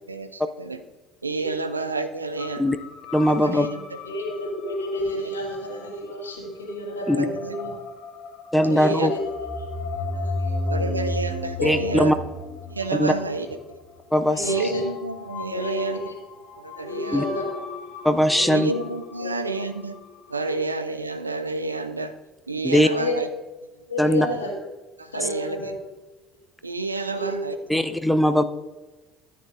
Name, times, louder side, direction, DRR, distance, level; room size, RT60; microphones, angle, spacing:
voice 1, 0.1-0.8 1.2-2.7 3.3-3.8 5.1-5.2 7.1-7.5 8.7-9.1 10.7-12.1 12.7-13.5 14.4-16.1 16.6-17.2 18.5-20.0 20.3-22.1 22.5-23.3 25.0-25.8 26.6-27.6, right 3 dB, 85° right, 10 dB, 0.5 m, -29 dB
sound 1, 2.4-20.5, left 6 dB, 55° left, 1.3 m, -40 dB
voice 2, 3.1-3.7 7.1-7.3 8.5-9.1 11.6-12.2 13.0-13.1 14.1-14.5 17.1-17.2 18.0-18.7 22.6-22.9 24.0-24.3 27.7-28.4, left 1 dB, 5° left, 9 dB, 0.6 m, -20 dB
voice 3, 4.0-7.7 8.6-9.2 9.6-9.7 10.1-10.9 11.6-12.0 13.2-13.5 14.3-14.9 15.5-16.1 16.8-17.6 18.4-18.6 19.2-19.5 20.4-20.6 22.9-23.2 23.9-24.5 25.1-25.8 27.1-27.4, left 1 dB, 80° left, 0 dB, 1.9 m, -31 dB
sound 2, 9.3-13.9, left 1 dB, 20° right, 1.4 m, -30 dB
13.5 x 9.4 x 2.5 m, 1.2 s
figure-of-eight pair, 60°, 0 cm